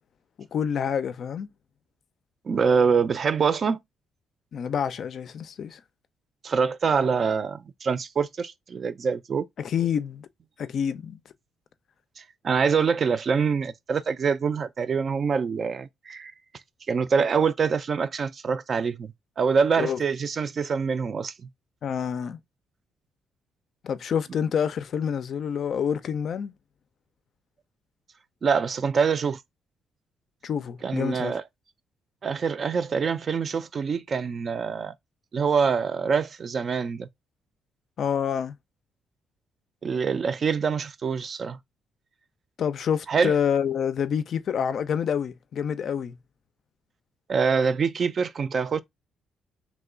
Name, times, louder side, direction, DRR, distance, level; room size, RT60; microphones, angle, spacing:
voice 1, 0.4-1.5 4.5-5.8 9.6-10.3 10.6-11.2 19.8-20.0 21.8-22.4 23.8-26.5 30.4-31.3 38.0-38.6 42.6-46.2, left 8 dB, 60° left, 0.4 m, -27 dB
voice 2, 2.5-3.8 6.4-9.5 12.2-16.3 16.9-21.3 28.4-29.4 30.8-31.4 32.2-34.9 35.3-37.1 39.8-41.6 43.1-43.4 47.3-48.8, right 5 dB, 45° right, 0.3 m, -25 dB
3.0 x 2.2 x 3.6 m
cardioid pair, 90°, 0 cm